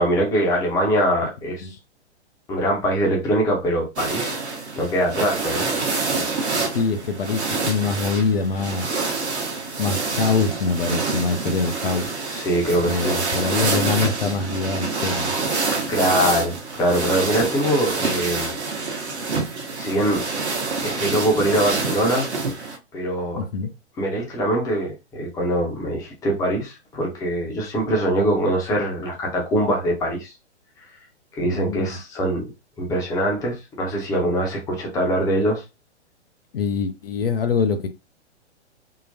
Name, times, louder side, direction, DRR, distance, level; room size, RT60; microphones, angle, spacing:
voice 1, 0.0-1.7 2.5-4.4 4.8-5.7 12.3-13.2 15.9-18.6 19.8-20.2 20.8-22.3 22.9-23.4 24.0-30.3 31.4-32.4 32.8-35.6, right 1 dB, 10° left, 0.7 m, -23 dB
sound 1, 4.0-22.8, right 3 dB, 70° right, 1.0 m, -27 dB
voice 2, 6.6-9.1 9.8-12.1 12.8-15.3 23.4-23.7 31.4-32.0 36.5-37.9, left 5 dB, 55° left, 0.6 m, -24 dB
3.8 x 2.1 x 2.7 m
figure-of-eight pair, 115°, 35 cm